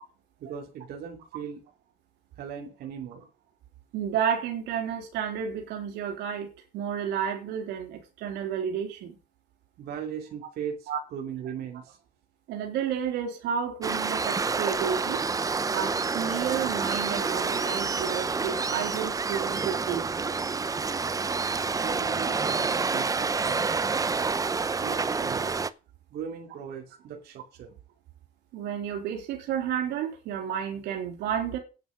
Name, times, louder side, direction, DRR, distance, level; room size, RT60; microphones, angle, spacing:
voice 1, 0.4-1.6 2.4-3.3 9.8-12.0 21.8-23.7 24.8-25.6 26.1-27.7, right 7 dB, 70° right, 2.8 m, -38 dB
voice 2, 3.9-9.2 10.9-11.0 12.5-15.2 15.7-20.0 28.5-31.6, right 8 dB, 85° right, 3.6 m, -31 dB
Waves surf, 13.8-25.7, right 4 dB, 20° right, 0.7 m, -28 dB
9.8 x 9.3 x 6.5 m
cardioid pair, 110°, 17 cm